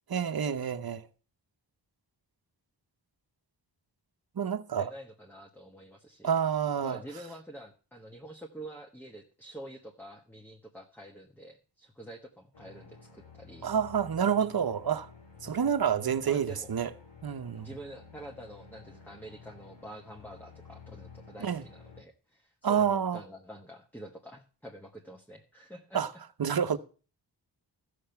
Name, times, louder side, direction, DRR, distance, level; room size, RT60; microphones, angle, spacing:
voice 1, 0.1-1.1 4.4-4.9 6.2-7.0 13.6-15.1 15.4-16.9 17.2-17.7 21.4-21.6 22.6-23.2 25.9-26.1 26.4-26.8, right 8 dB, 55° right, 0.9 m, -28 dB
voice 2, 4.8-6.4 6.8-13.7 15.4-15.7 16.2-16.7 17.5-26.0, right 1 dB, 5° left, 1.2 m, -47 dB
sound 1, 12.5-22.0, left 5 dB, 85° left, 3.8 m, -52 dB
14.0 x 6.8 x 5.7 m
wide cardioid pair, 80°, 43 cm